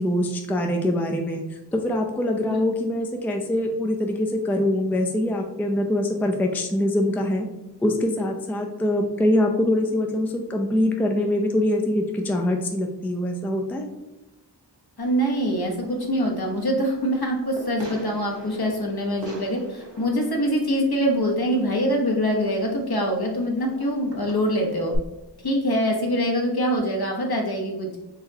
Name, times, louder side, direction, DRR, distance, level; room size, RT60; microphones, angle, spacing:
voice 1, 0.0-7.5 7.8-13.9, left 1 dB, 5° left, 3 dB, 0.4 m, -24 dB
voice 2, 15.0-24.9 25.4-27.9, equal, 60° left, 0 dB, 0.9 m, -24 dB
Fireworks, 15.0-25.0, right 1 dB, 75° right, 1.0 m, -43 dB
4.0 x 3.0 x 2.7 m, 0.97 s
wide cardioid pair, 40°, 43 cm